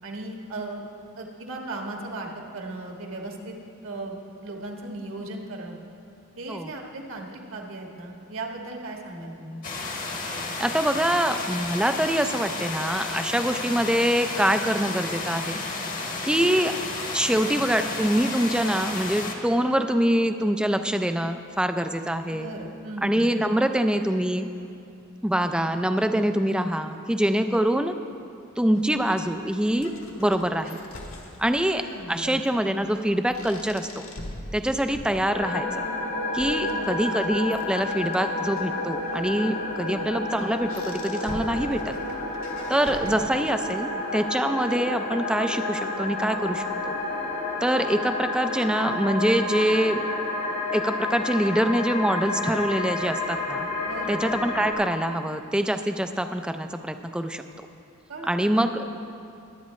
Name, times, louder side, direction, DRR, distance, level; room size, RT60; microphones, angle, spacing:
voice 1, 0.0-0.8 1.2-3.6 3.8-5.8 6.3-9.6 22.3-23.3 31.9-32.4 36.6-37.0 39.9-40.1 43.0-43.3 53.8-54.2 58.1-58.5, right 2 dB, 70° right, 0 dB, 1.5 m, -37 dB
sound 1, 9.6-19.3, left 3 dB, 40° left, 1.1 m, -32 dB
voice 2, 10.6-15.6 16.2-16.7 17.1-22.5 23.0-24.5 25.2-27.9 28.6-29.9 30.2-30.8 31.4-34.1 34.5-35.9 36.3-41.9 42.7-46.9 47.6-50.0 50.7-53.7 54.1-57.4 58.3-58.9, right 1 dB, 5° right, 8 dB, 0.4 m, -24 dB
sound 2, 28.7-43.7, left 1 dB, 65° left, 1.5 m, -44 dB
sound 3, 35.3-54.7, left 2 dB, 85° left, 2.5 m, -30 dB
21.5 x 9.2 x 3.2 m, 2.6 s
head